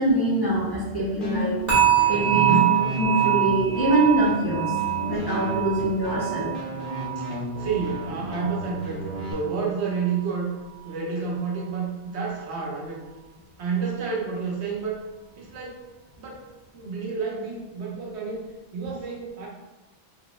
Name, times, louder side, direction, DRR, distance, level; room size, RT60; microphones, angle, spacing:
voice 1, 0.0-1.6 2.1-2.6 3.0-4.7 5.0-6.5, right 1 dB, 25° left, -8 dB, 0.8 m, -24 dB
sound 1, 1.2-9.3, equal, 55° left, 1.0 m, -33 dB
sound 2, 1.7-8.8 9.1-9.4 9.9-10.1, right 12 dB, 40° right, 1.2 m, -25 dB
voice 2, 2.3-2.8 7.2-9.0 9.3-10.5 10.8-13.0 13.6-15.0 15.4-15.8 16.2-16.5 16.7-18.4 18.7-19.5, right 5 dB, 75° right, -3 dB, 1.0 m, -29 dB
3.9 x 2.8 x 2.3 m, 1.1 s
omnidirectional pair, 1.1 m